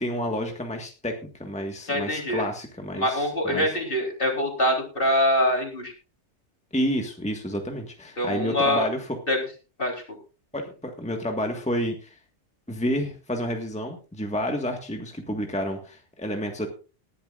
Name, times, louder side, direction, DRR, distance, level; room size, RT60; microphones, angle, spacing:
voice 1, 0.0-3.7 6.7-9.2 10.5-12.2 12.7-16.7, equal, 5° left, 3 dB, 1.7 m, -30 dB
voice 2, 1.9-2.5 2.9-5.9 8.2-8.9 9.3-9.4 9.8-10.0, left 1 dB, 50° left, 1 dB, 3.9 m, -24 dB
20.0 x 11.0 x 2.5 m, 0.33 s
omnidirectional pair, 1.2 m